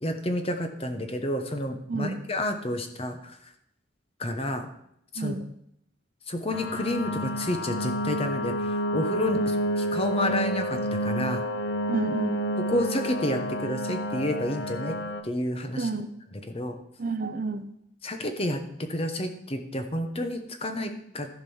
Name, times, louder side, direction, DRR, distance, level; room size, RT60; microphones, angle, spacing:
voice 1, 0.0-3.4 4.2-4.7 5.1-5.3 6.3-11.4 12.6-15.0 15.2-15.9 16.5-16.8 18.0-21.3, left 1 dB, 30° left, 7 dB, 1.0 m, -30 dB
voice 2, 1.9-2.2 5.2-5.4 9.3-9.6 11.9-12.4 15.8-16.1 17.0-17.7, right 3 dB, 40° right, 10 dB, 0.6 m, -30 dB
sound 1, 6.5-15.2, equal, 65° left, 0.8 m, -29 dB
14.0 x 5.3 x 5.6 m, 0.75 s
head